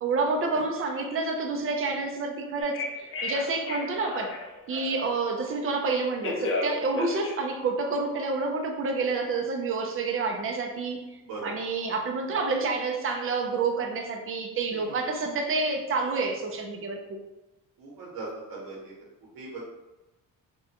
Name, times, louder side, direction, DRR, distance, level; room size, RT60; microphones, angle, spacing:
voice 1, 0.0-4.3 4.7-11.0 11.4-17.2, right 3 dB, 40° right, 2 dB, 0.5 m, -28 dB
Telephone, 2.6-5.1 5.9-8.3, left 2 dB, 35° left, 0.5 m, -34 dB
voice 2, 11.2-11.5 14.7-15.1 17.8-18.9 19.3-19.7, right 3 dB, 75° right, -5 dB, 0.9 m, -39 dB
3.4 x 2.2 x 2.8 m, 1.1 s
cardioid pair, 135°, 35 cm